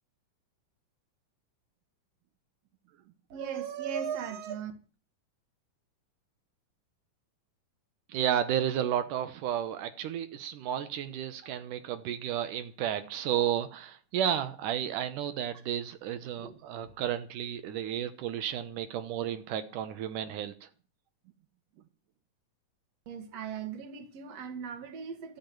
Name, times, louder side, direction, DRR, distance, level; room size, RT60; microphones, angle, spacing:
voice 1, 3.3-4.7 16.4-16.6 16.8-16.9 23.1-25.4, right 8 dB, 60° right, 2.6 m, -37 dB
voice 2, 8.1-20.7, right 10 dB, 85° right, 2.6 m, -32 dB
13.0 x 7.6 x 9.4 m
omnidirectional pair, 3.6 m